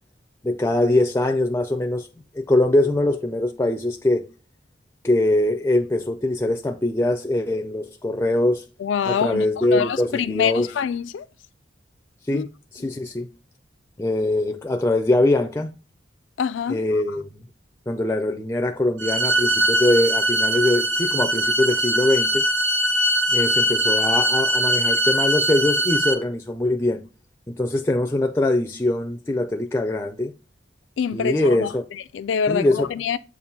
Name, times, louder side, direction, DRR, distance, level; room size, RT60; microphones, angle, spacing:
voice 1, 0.4-2.1 2.3-4.3 5.0-8.6 9.1-10.7 12.3-12.5 12.7-13.3 14.0-15.7 16.7-17.4 17.9-22.4 23.3-27.0 27.5-30.3 31.1-31.8 32.5-32.9, left 1 dB, 15° left, 0.4 m, -22 dB
voice 2, 8.8-11.3 12.3-12.5 12.8-12.9 16.4-16.8 31.0-33.2, left 7 dB, 90° left, 0.3 m, -25 dB
sound 1, 19.0-26.1, right 1 dB, 80° right, 1.0 m, -21 dB
7.2 x 2.5 x 5.3 m
head